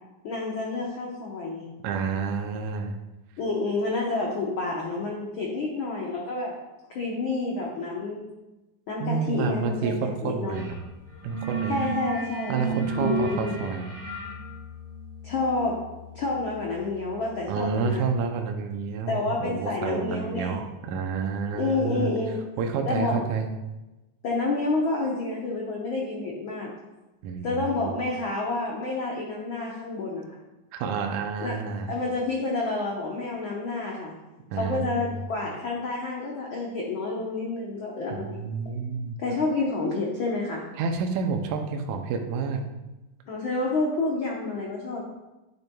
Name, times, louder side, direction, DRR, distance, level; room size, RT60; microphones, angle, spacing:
voice 1, 0.2-1.7 3.4-6.5 6.9-8.3 8.9-10.6 11.7-13.6 15.2-15.8 16.1-18.0 19.1-20.6 21.5-22.4 22.9-23.2 24.2-26.7 27.4-30.4 31.4-31.6 31.9-34.1 34.6-38.6 39.2-40.6 43.3-45.0, left 3 dB, 90° left, -2 dB, 1.1 m, -29 dB
voice 2, 1.8-2.9 9.0-10.8 11.2-11.9 12.5-13.9 17.5-22.1 22.6-23.5 27.2-27.7 30.7-31.9 34.5-35.0 38.1-39.2 40.8-42.6, right 5 dB, 75° right, 4 dB, 2.0 m, -29 dB
sound 1, 10.5-10.8 11.0-17.7, right 4 dB, 10° right, 1.5 m, -34 dB
10.0 x 6.7 x 2.3 m, 1.0 s
omnidirectional pair, 3.6 m